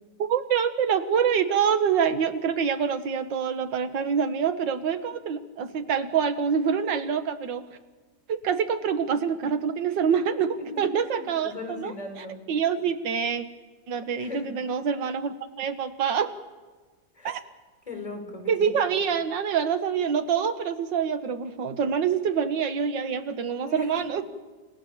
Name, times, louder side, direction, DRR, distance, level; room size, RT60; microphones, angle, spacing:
voice 1, 0.2-7.6 8.3-13.5 13.9-16.3 17.2-17.4 18.5-24.2, right 7 dB, 90° right, 10 dB, 1.9 m, -26 dB
voice 2, 11.4-12.4 14.1-14.6 17.2-17.4 17.9-18.7 23.6-23.9, left 3 dB, 20° left, 3 dB, 5.4 m, -38 dB
28.5 x 16.0 x 7.2 m, 1.3 s
omnidirectional pair, 1.9 m